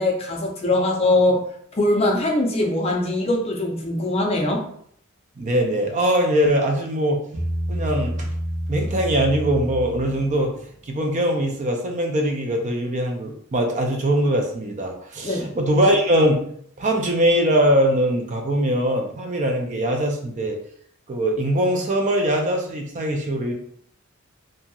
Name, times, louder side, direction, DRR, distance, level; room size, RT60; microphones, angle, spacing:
voice 1, 0.0-1.4 1.7-4.6 15.2-15.5, left 2 dB, 30° left, 0 dB, 0.5 m, -21 dB
voice 2, 5.4-7.2 7.7-8.3 8.7-10.5 10.9-16.4 16.8-20.6 21.1-23.5, right 1 dB, 35° right, 3 dB, 0.4 m, -21 dB
Bass guitar, 7.3-10.7, equal, 85° right, 1.0 m, -28 dB
2.8 x 2.7 x 2.3 m, 0.64 s
head